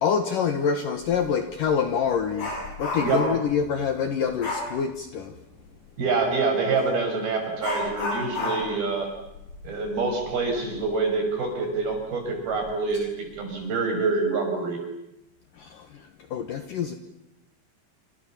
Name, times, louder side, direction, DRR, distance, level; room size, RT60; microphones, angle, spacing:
voice 1, 0.0-2.5 2.8-5.3 15.6-17.0, left 7 dB, 65° left, 8 dB, 2.4 m, -26 dB
Dog, 1.0-1.2 1.6-3.5 4.4-4.8 6.7-6.9 7.6-10.9 11.2-11.3 11.8-11.9 12.6-13.0 13.4-13.6, left 2 dB, 40° left, 8.4 m, -32 dB
voice 2, 6.0-9.1 9.6-14.8, right 4 dB, 55° right, 4 dB, 7.6 m, -26 dB
28.0 x 27.0 x 7.3 m, 0.88 s
omnidirectional pair, 5.3 m